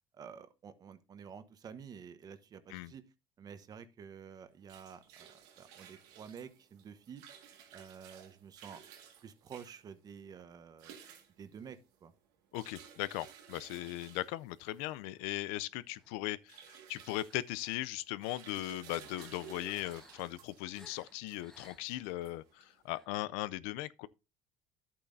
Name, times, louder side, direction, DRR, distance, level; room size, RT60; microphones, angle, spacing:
voice 1, 0.1-3.0 3.4-7.2 7.7-8.8 9.2-11.0 11.4-12.1, right 7 dB, 35° right, 1.0 m, -50 dB
sound 1, 4.4-22.9, right 8 dB, 90° right, 1.8 m, -56 dB
voice 2, 12.5-24.1, left 16 dB, 85° left, 0.5 m, -38 dB
sound 2, 14.6-15.5 15.9-16.2 17.0-17.9 18.4-22.2 22.8-23.1, left 1 dB, 5° left, 1.3 m, -61 dB
11.0 x 8.6 x 2.6 m
cardioid pair, 120°, 11 cm